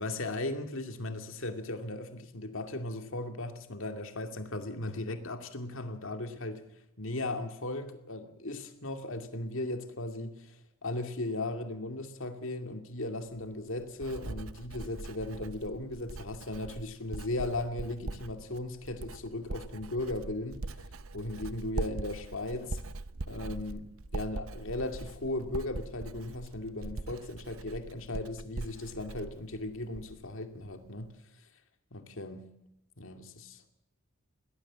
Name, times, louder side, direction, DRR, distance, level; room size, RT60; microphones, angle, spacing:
voice 1, 0.0-6.6 7.0-20.6 21.1-22.8 23.3-31.1 31.9-32.5 33.0-33.6, left 2 dB, 60° left, 6 dB, 2.4 m, -37 dB
Writing, 13.3-30.3 30.6-31.1, right 2 dB, 65° right, 0.8 m, -42 dB
22.0 x 17.5 x 7.5 m, 0.86 s
head